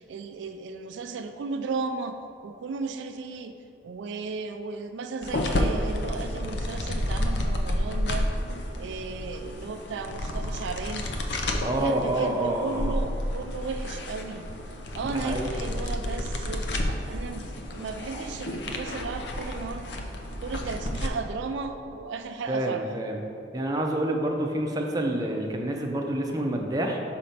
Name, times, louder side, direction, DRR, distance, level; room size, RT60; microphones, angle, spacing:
voice 1, 0.0-2.2 2.4-3.6 3.8-8.3 8.8-11.1 11.6-14.5 14.9-16.7 17.1-19.9 20.4-22.8, right 4 dB, 75° right, 7 dB, 0.3 m, -35 dB
sound 1, 5.2-21.1, left 1 dB, 65° left, 0.6 m, -31 dB
voice 2, 11.6-12.9 15.0-15.5 22.5-23.2 23.5-27.0, right 1 dB, 20° right, 1 dB, 0.5 m, -28 dB
5.3 x 4.2 x 5.7 m, 2.6 s
head